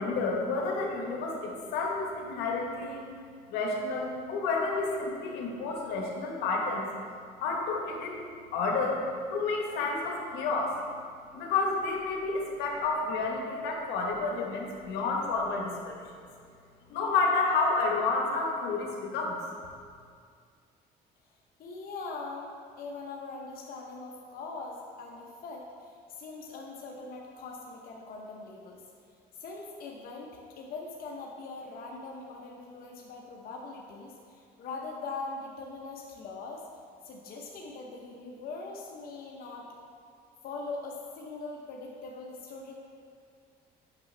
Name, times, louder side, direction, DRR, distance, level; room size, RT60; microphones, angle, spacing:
voice 1, 0.0-3.0 3.5-6.9 7.4-8.3 8.5-9.0 9.3-10.8 11.3-16.0 16.9-19.4, left 3 dB, 90° left, -1 dB, 1.2 m, -30 dB
voice 2, 21.6-28.8 29.4-36.6 37.0-39.7 40.4-42.7, left 3 dB, 60° left, -1 dB, 0.9 m, -41 dB
8.5 x 5.6 x 3.3 m, 2.2 s
cardioid pair, 110°, 17 cm